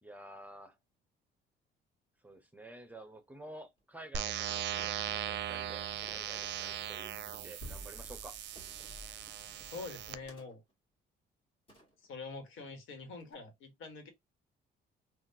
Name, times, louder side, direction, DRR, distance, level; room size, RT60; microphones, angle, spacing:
voice 1, 0.0-0.8 2.2-8.4, right 1 dB, 10° right, 0.8 m, -51 dB
sound 1, 3.6-3.8 4.8-5.2 6.0-6.4 7.3-7.7 8.6-9.0 10.3-10.7 11.7-12.2 13.2-13.3, equal, 30° left, 1.8 m, -60 dB
sound 2, 4.1-10.1, right 10 dB, 65° right, 0.5 m, -39 dB
sound 3, 4.5-10.3, equal, 60° left, 1.4 m, -54 dB
voice 2, 9.6-10.6 12.1-14.1, left 4 dB, 80° left, 1.4 m, -45 dB
3.7 x 2.5 x 2.7 m
cardioid pair, 90°, 20 cm